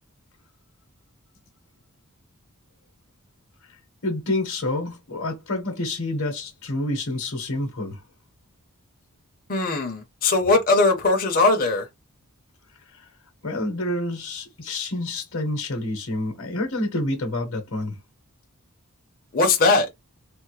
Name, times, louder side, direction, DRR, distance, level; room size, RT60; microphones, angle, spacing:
voice 1, 3.6-8.0 12.8-13.1 13.4-18.0, left 1 dB, 60° left, 1.0 m, -28 dB
voice 2, 9.5-11.9 19.3-19.9, left 3 dB, 40° left, 0.7 m, -20 dB
3.3 x 2.1 x 3.1 m
head